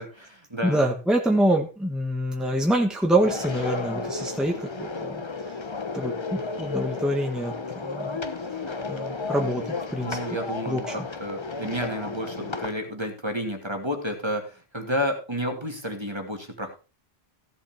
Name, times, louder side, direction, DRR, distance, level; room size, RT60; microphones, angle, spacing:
voice 1, 0.0-0.8 10.0-16.8, equal, 25° right, 4 dB, 2.2 m, -31 dB
voice 2, 0.6-5.2 5.9-7.5 7.8-8.2 8.9-10.2 10.7-10.9, right 1 dB, ahead, 2 dB, 1.7 m, -25 dB
sound 1, 3.2-12.7, left 4 dB, 30° left, 0.9 m, -33 dB
15.0 x 7.2 x 4.4 m, 0.32 s
omnidirectional pair, 1.1 m